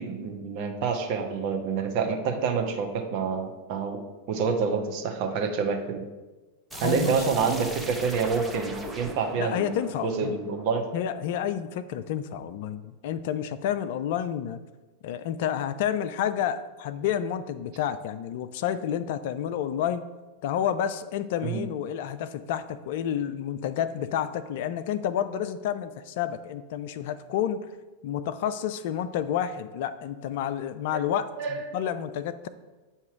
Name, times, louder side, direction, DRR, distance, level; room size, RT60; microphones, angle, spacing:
voice 1, 0.0-4.0 4.3-6.0 6.8-9.7 10.0-10.8 21.4-21.7 30.9-31.0 31.4-31.8, right 5 dB, 45° right, 4 dB, 0.8 m, -27 dB
voice 2, 6.7-7.2 9.4-10.4 10.9-14.6 15.0-20.0 20.4-27.6 28.0-32.5, left 9 dB, 50° left, 13 dB, 0.3 m, -30 dB
sound 1, 6.7-11.4, right 2 dB, 5° right, 0.7 m, -40 dB
8.2 x 2.8 x 4.7 m, 1.2 s
figure-of-eight pair, 90°, 0 cm